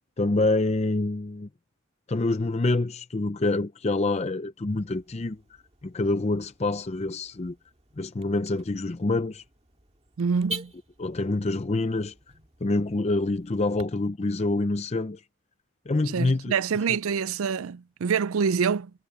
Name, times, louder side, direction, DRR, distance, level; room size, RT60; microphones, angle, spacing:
voice 1, 0.2-1.5 2.1-5.4 5.8-7.6 8.0-9.4 11.0-12.1 12.6-15.2 15.9-16.5, left 2 dB, 30° left, 0.5 m, -26 dB
Car / Alarm, 4.7-13.8, right 1 dB, 30° right, 2.0 m, -46 dB
voice 2, 10.2-10.7 16.1-18.9, right 6 dB, 80° right, 0.4 m, -26 dB
head